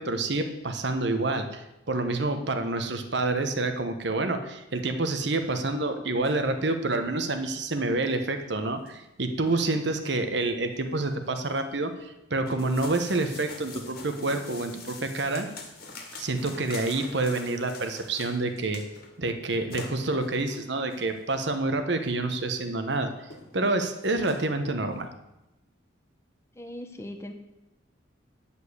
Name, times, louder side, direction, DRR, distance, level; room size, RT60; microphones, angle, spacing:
voice 1, 0.0-15.5 16.1-18.8 19.2-23.1 23.5-25.1, right 2 dB, 60° right, 7 dB, 1.1 m, -28 dB
sound 1, 6.2-6.3 6.9-7.1 7.4-7.5 8.0-8.1 8.6-9.1 9.5-9.6 9.9-10.0 10.3-10.5 10.7-11.7 12.5-19.1 19.4-19.5 19.7-21.1 21.9-22.0 22.5-22.6 22.9-23.0 23.3-23.7 24.0-24.4, left 3 dB, 50° left, 1.8 m, -44 dB
voice 2, 26.6-27.3, left 1 dB, 15° left, 5 dB, 0.9 m, -39 dB
10.0 x 5.5 x 8.1 m, 0.94 s
head